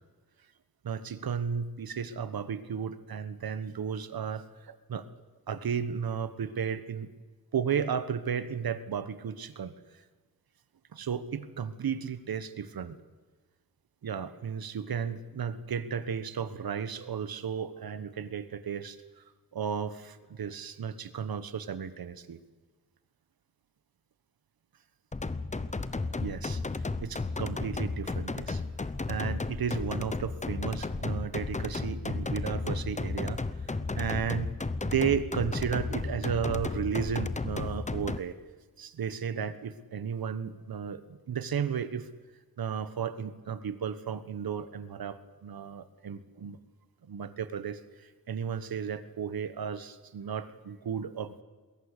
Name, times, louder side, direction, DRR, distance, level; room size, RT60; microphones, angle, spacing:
voice 1, 0.8-5.0 5.5-7.1 7.5-9.7 10.9-13.0 14.0-19.0 19.5-22.4 26.2-26.6 27.0-28.6 29.1-33.4 33.9-34.5 34.8-38.3 38.8-42.1 42.6-46.6 47.1-51.4, right 7 dB, 85° right, 13 dB, 1.4 m, -34 dB
sound 1, 25.1-38.2, left 3 dB, 20° left, 0.8 m, -33 dB
21.5 x 17.0 x 8.3 m, 1.4 s
wide cardioid pair, 140°, 35 cm